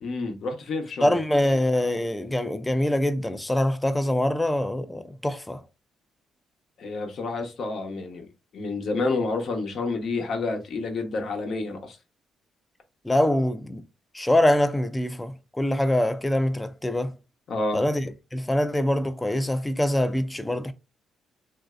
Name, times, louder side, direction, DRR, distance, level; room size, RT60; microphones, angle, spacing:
voice 1, 0.0-1.1 6.8-8.3 8.5-12.0 17.5-17.8, left 3 dB, 60° left, 0.9 m, -29 dB
voice 2, 1.0-5.6 13.0-13.8 14.1-17.1 17.7-20.7, left 1 dB, 10° left, 0.4 m, -24 dB
3.1 x 2.6 x 2.4 m
cardioid pair, 90°, 0 cm